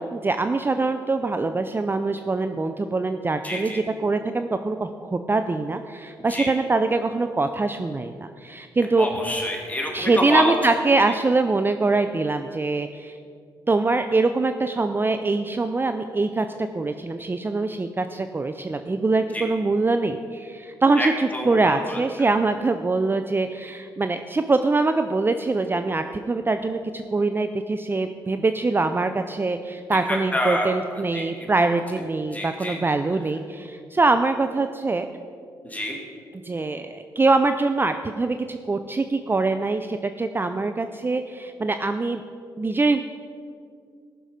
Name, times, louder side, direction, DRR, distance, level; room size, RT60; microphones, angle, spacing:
voice 1, 0.0-3.7 4.0-9.1 9.9-13.2 13.7-35.1 36.4-42.2 42.6-43.0, right 3 dB, 25° right, 8 dB, 0.5 m, -23 dB
voice 2, 3.4-3.8 6.3-6.5 9.0-10.5 19.3-19.5 21.0-22.3 29.9-31.5 32.3-32.8 35.6-36.0, left 1 dB, 15° left, 0 dB, 2.6 m, -28 dB
14.5 x 6.2 x 5.2 m, 2.3 s
supercardioid pair, 55°, 9 cm